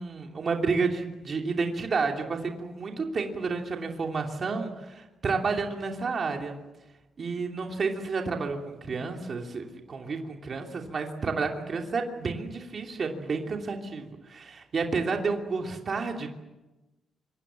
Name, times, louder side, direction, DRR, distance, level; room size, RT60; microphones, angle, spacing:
voice 1, 0.0-6.6 7.2-16.3, right 4 dB, 35° right, 2 dB, 2.9 m, -30 dB
26.0 x 24.0 x 7.5 m, 1.1 s
wide cardioid pair, 170°, 0 cm